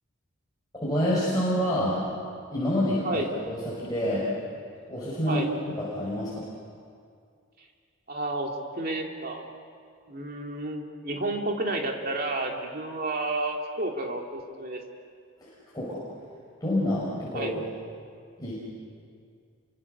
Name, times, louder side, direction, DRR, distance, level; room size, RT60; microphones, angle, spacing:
voice 1, 0.7-2.0 2.5-4.3 4.9-5.5 5.8-6.4 15.4-16.0 16.6-17.5 18.4-18.5, equal, 20° left, -8 dB, 5.8 m, -27 dB
voice 2, 8.1-8.5 8.8-9.4 10.1-14.8 17.3-17.5, right 2 dB, 45° right, 1 dB, 2.6 m, -31 dB
29.5 x 24.5 x 6.8 m, 2.2 s
head